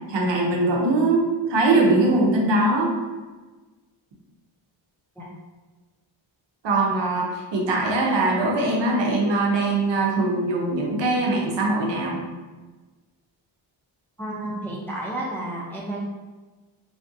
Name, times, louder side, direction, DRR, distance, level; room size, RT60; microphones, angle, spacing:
voice 1, 0.1-2.9 6.6-12.2, right 2 dB, 60° right, -1 dB, 0.8 m, -21 dB
voice 2, 14.2-16.0, right 1 dB, 5° left, -4 dB, 0.4 m, -31 dB
3.3 x 2.5 x 2.6 m, 1.3 s
wide cardioid pair, 115°, 48 cm